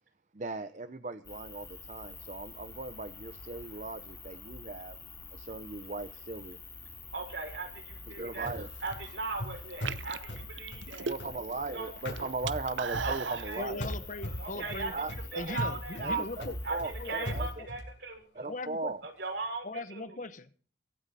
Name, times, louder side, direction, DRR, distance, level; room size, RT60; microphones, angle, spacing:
voice 1, 0.3-5.0 5.3-6.6 8.1-8.7 11.0-13.8 14.9-15.6 16.0-17.6 18.3-19.0, right 3 dB, 40° right, 0.8 m, -38 dB
sound 1, 1.2-17.5, left 3 dB, 15° left, 3.3 m, -48 dB
voice 2, 7.1-8.5 8.8-11.1 11.7-11.9 13.0-13.6 14.2-14.9 15.3-16.2 16.6-16.8 17.1-18.2 19.0-20.0, right 3 dB, 70° right, 5.6 m, -38 dB
sound 2, 8.4-11.7 12.0-13.5 13.8-17.9, left 1 dB, 80° left, 6.6 m, -39 dB
sound 3, 8.7-9.1 9.7-11.5 11.8-13.5, right 6 dB, 85° right, 0.7 m, -37 dB
voice 3, 13.6-14.9 15.4-16.6 17.0-17.7 18.4-18.9 19.6-20.6, left 2 dB, 45° left, 1.0 m, -40 dB
23.5 x 8.7 x 4.2 m
head